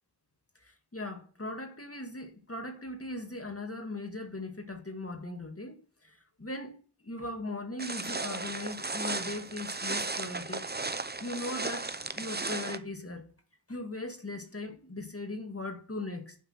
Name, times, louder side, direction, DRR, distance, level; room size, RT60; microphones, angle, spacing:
voice 1, 0.6-10.7 10.9-13.3 13.7-16.4, left 2 dB, 35° left, 2.1 m, -39 dB
sound 1, 7.8-12.8, right 3 dB, 25° right, 0.7 m, -35 dB
11.0 x 5.9 x 7.9 m
wide cardioid pair, 50°, 41 cm